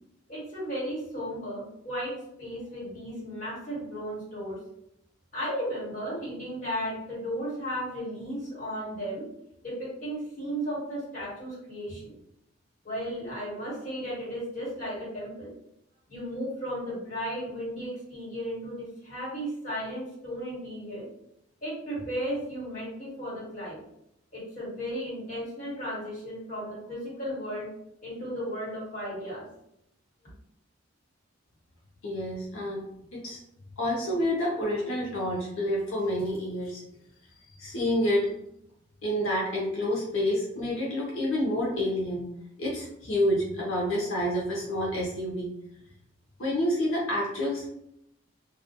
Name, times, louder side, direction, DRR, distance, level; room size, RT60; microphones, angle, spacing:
voice 1, 0.3-4.6 5.3-9.3 9.6-12.1 12.8-15.5 16.1-21.0 21.6-23.8 24.3-27.7 28.0-29.5, equal, 40° left, -8 dB, 1.4 m, -35 dB
voice 2, 32.0-32.9 33.1-33.4 33.8-36.8 37.6-38.3 39.0-42.3 42.6-45.5 46.4-47.7, left 1 dB, 90° left, -4 dB, 0.7 m, -28 dB
2.3 x 2.1 x 2.8 m, 0.78 s
head